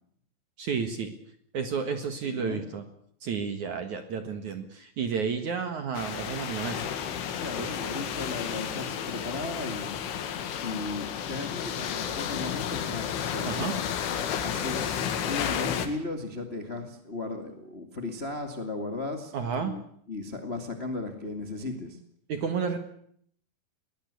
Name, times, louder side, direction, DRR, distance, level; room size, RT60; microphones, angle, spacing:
voice 1, 0.6-1.1 1.5-2.8 3.2-6.9 7.6-7.8 13.4-13.7 19.3-19.7 22.3-22.8, right 6 dB, 55° right, 8 dB, 2.3 m, -31 dB
voice 2, 2.2-2.6 7.4-10.0 10.5-13.8 14.4-19.8 20.1-22.0, left 2 dB, 40° left, 6 dB, 0.9 m, -36 dB
sound 1, 5.9-15.9, left 8 dB, 85° left, 4.5 m, -32 dB
22.5 x 19.0 x 8.4 m, 0.65 s
omnidirectional pair, 5.5 m